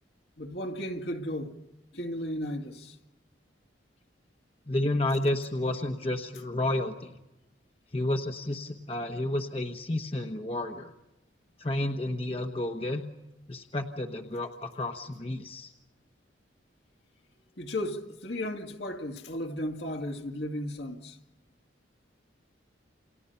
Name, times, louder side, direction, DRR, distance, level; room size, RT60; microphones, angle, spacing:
voice 1, 0.4-1.6 1.9-3.0 17.6-21.2, left 1 dB, 65° left, 2.2 m, -35 dB
voice 2, 4.7-7.2 7.9-10.9 11.6-13.0 13.5-15.7, left 1 dB, 30° left, 1.2 m, -31 dB
29.5 x 27.5 x 5.7 m
head